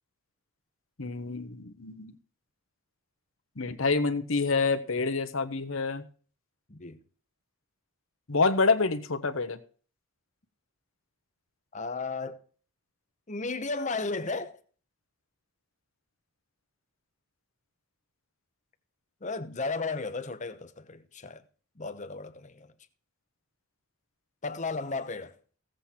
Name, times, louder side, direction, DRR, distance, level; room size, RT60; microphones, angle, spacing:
voice 1, 1.0-2.1 3.6-6.0 8.3-9.6, left 4 dB, 60° left, 1.1 m, -27 dB
voice 2, 6.7-7.0 11.7-12.4 13.3-14.6 19.2-21.5 21.8-22.7 24.4-25.3, left 3 dB, 30° left, 0.9 m, -34 dB
16.0 x 7.8 x 4.4 m
head